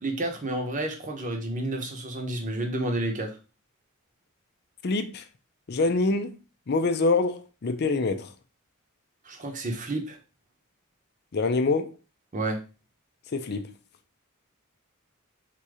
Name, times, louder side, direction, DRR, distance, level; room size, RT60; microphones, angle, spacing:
voice 1, 0.0-3.3 9.2-10.2 12.3-12.6, right 1 dB, 35° right, 1.0 m, -30 dB
voice 2, 4.8-5.2 5.7-8.3 11.3-11.9 13.3-13.7, left 3 dB, 50° left, 0.5 m, -25 dB
3.8 x 2.8 x 4.8 m
head